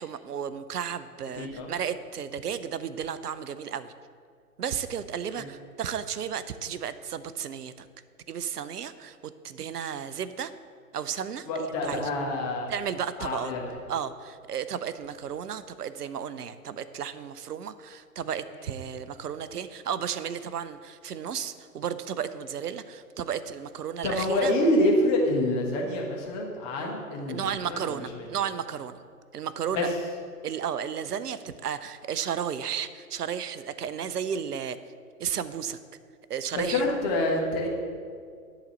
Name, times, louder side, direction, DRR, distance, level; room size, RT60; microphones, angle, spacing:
voice 1, 0.0-3.9 4.6-7.9 8.3-10.5 10.9-12.1 12.7-13.5 13.9-24.5 27.3-29.0 29.3-29.9 30.4-34.8 35.2-35.8 36.3-36.8, right 8 dB, 75° right, 13 dB, 0.7 m, -33 dB
voice 2, 1.4-1.7 11.5-12.7 13.2-13.7 24.0-28.0 29.7-29.8 36.5-37.7, left 1 dB, 25° left, -1 dB, 1.4 m, -26 dB
11.5 x 4.0 x 6.7 m, 2.1 s
figure-of-eight pair, 135°, 47 cm